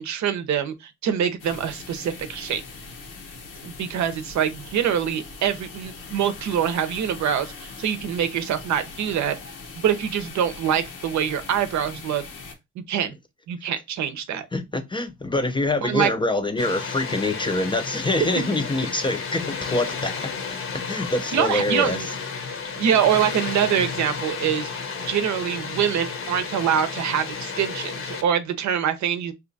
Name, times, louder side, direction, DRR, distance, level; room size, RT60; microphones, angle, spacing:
voice 1, 0.0-2.6 3.6-9.4 9.8-12.2 12.9-13.1 13.5-14.5 15.8-16.1 21.3-22.1 22.8-24.7 25.1-29.3, right 9 dB, 65° right, 0.7 m, -24 dB
sound 1, 1.4-12.5, left 4 dB, 90° left, 1.0 m, -41 dB
voice 2, 14.5-20.3 20.7-22.1, left 2 dB, 15° left, 0.4 m, -25 dB
Water, 16.6-28.2, left 5 dB, 45° left, 0.7 m, -32 dB
2.8 x 2.3 x 3.9 m
cardioid pair, 90°, 30 cm